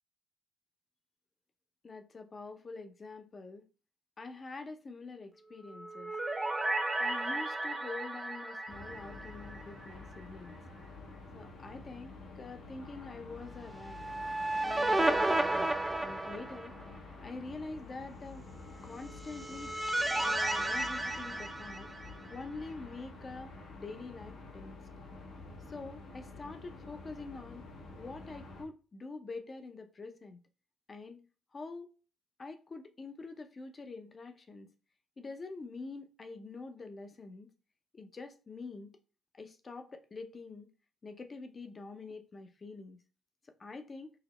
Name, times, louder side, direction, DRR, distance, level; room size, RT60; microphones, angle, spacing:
voice 1, 1.8-3.6 4.2-6.1 7.0-10.6 11.3-14.0 14.6-15.7 16.0-16.7 17.2-18.5 18.8-19.7 20.0-21.9 22.3-24.8 25.7-27.6 28.0-30.4 30.9-31.2 31.5-31.9 32.4-34.7 35.2-37.5 37.9-38.9 39.3-40.7 41.0-43.0 43.6-44.1, left 3 dB, 35° left, 0.6 m, -45 dB
sound 1, 5.6-9.9 10.2-10.3 13.8-17.0 19.0-22.4, right 2 dB, 15° right, 0.5 m, -33 dB
sound 2, 8.7-28.6, left 3 dB, 75° left, 0.9 m, -49 dB
4.8 x 2.0 x 3.1 m
cardioid pair, 90°, 0 cm